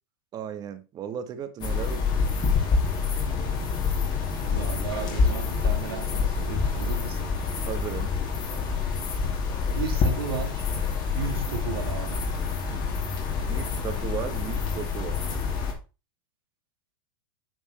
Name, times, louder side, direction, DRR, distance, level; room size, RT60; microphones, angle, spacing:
voice 1, 0.3-2.1 7.6-8.1 13.4-15.3, right 8 dB, 35° right, 1.3 m, -35 dB
sound 1, 1.6-15.7, left 5 dB, 35° left, 2.5 m, -27 dB
voice 2, 4.4-7.3 9.7-10.7 11.1-12.2, right 6 dB, 85° right, 2.2 m, -35 dB
9.1 x 4.5 x 4.2 m
hypercardioid pair, 115°, 12 cm